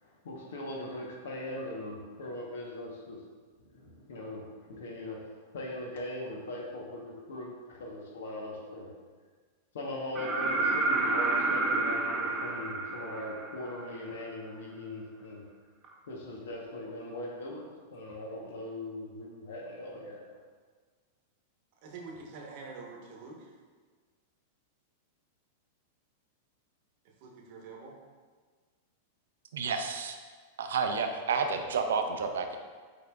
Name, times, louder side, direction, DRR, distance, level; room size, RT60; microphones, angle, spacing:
voice 1, 0.0-3.2 3.6-5.3 5.5-8.9 9.7-15.4 16.1-20.4, left 1 dB, 75° left, -1 dB, 0.9 m, -40 dB
sound 1, 10.1-13.9 15.8-15.9, right 3 dB, 30° right, 0.6 m, -29 dB
voice 2, 21.8-23.4 27.2-28.0, right 4 dB, 55° right, 0 dB, 0.9 m, -45 dB
voice 3, 29.5-30.2 30.6-32.6, right 5 dB, 80° right, 6 dB, 0.4 m, -30 dB
5.2 x 3.7 x 2.3 m, 1.5 s
hypercardioid pair, 110°, 0 cm